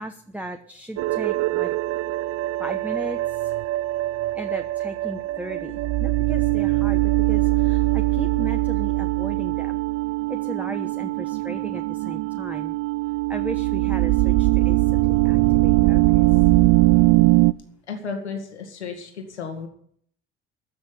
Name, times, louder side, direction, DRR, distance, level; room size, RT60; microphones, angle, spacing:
voice 1, 0.0-1.7 2.6-3.5 4.3-9.8 10.3-12.7 13.3-16.4, right 1 dB, 5° right, 7 dB, 1.1 m, -36 dB
sound 1, 1.0-17.5, right 20 dB, 45° right, 0.5 m, -21 dB
voice 2, 17.9-19.7, left 5 dB, 85° left, 3 dB, 2.3 m, -33 dB
14.5 x 6.4 x 9.6 m, 0.63 s
hypercardioid pair, 65°, 33 cm